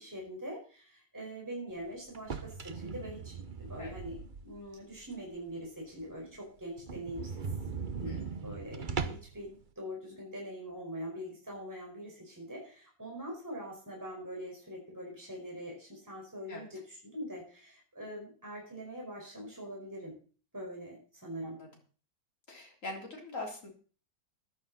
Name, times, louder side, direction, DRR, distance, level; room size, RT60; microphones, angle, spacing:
voice 1, 0.0-7.4 8.0-20.1 20.5-21.6, equal, 10° right, -2 dB, 5.0 m, -43 dB
sound 1, 2.1-4.7 5.1-5.2 5.6-5.7 6.0-6.1 6.4-6.5 6.8-9.4, right 5 dB, 40° right, 0.7 m, -39 dB
voice 2, 8.0-8.3 16.5-16.7 21.4-21.7 22.5-23.7, left 2 dB, 40° left, 0 dB, 3.8 m, -42 dB
15.0 x 11.5 x 4.2 m, 0.40 s
omnidirectional pair, 2.0 m